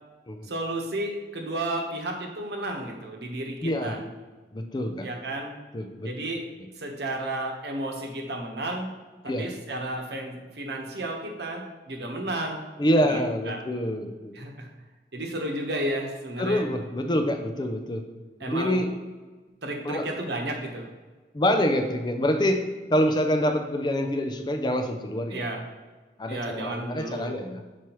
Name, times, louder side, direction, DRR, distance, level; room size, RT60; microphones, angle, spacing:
voice 1, 0.4-4.0 5.0-5.5 6.0-6.5 6.8-9.0 9.2-12.7 13.1-13.2 13.5-13.6 14.3-14.7 15.1-16.7 18.4-18.8 19.6-20.9 25.3-25.6 26.3-27.4, right 1 dB, 70° right, 2 dB, 1.0 m, -32 dB
voice 2, 3.6-4.0 4.5-5.1 5.7-6.1 9.3-9.5 12.8-14.3 16.4-18.1 18.5-18.9 19.8-20.1 21.3-25.4 26.2-27.7, equal, 25° left, 5 dB, 0.4 m, -26 dB
7.0 x 4.7 x 3.0 m, 1.3 s
head